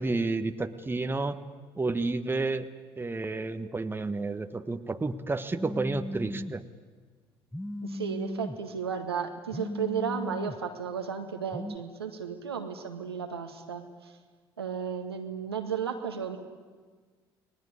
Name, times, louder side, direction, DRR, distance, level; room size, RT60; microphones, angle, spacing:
voice 1, 0.0-1.4 1.8-2.7 3.0-6.6, right 3 dB, 15° right, 9 dB, 1.5 m, -30 dB
Telephone, 5.5-6.6 7.5-8.6 9.5-10.6 11.5-11.8, equal, 5° left, 0.9 m, -36 dB
voice 2, 7.8-14.1 14.6-16.4, right 7 dB, 80° right, 5 dB, 1.8 m, -34 dB
30.0 x 20.5 x 9.6 m, 1.5 s
figure-of-eight pair, 55°, 13 cm